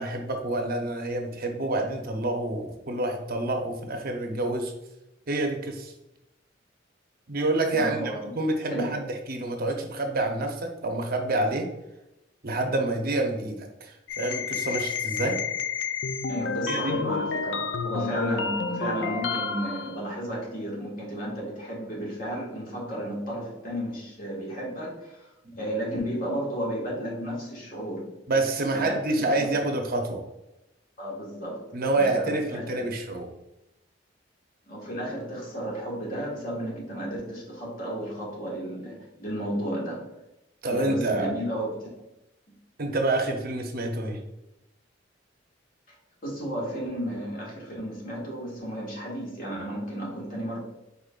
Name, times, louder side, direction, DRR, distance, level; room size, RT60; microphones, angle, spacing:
voice 1, 0.0-4.7 5.3-5.9 7.3-8.0 8.3-11.7 12.4-15.4 16.7-16.9 25.4-25.6 28.3-30.2 31.7-33.3 40.6-41.3 42.8-44.2, right 2 dB, 50° right, 3 dB, 0.7 m, -28 dB
voice 2, 7.7-8.3 8.7-9.0 16.2-25.2 25.6-28.1 28.7-29.7 31.0-32.9 34.7-40.1 40.7-41.9 42.5-42.6 46.2-50.6, equal, 50° left, -3 dB, 1.6 m, -33 dB
sound 1, 14.1-20.0, left 5 dB, 65° left, 0.4 m, -30 dB
5.2 x 4.2 x 2.4 m, 0.90 s
head